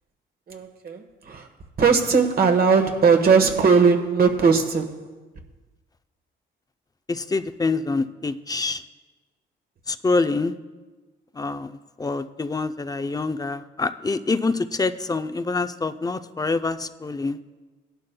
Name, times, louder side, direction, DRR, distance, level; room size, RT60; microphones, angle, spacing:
voice 1, 0.5-1.5 1.8-5.0, right 5 dB, 50° right, 1.4 m, -19 dB
voice 2, 7.1-8.8 9.9-10.5 11.4-11.7 12.0-17.4, left 3 dB, 20° left, 0.5 m, -26 dB
17.5 x 11.5 x 2.2 m
cardioid pair, 90°, 20 cm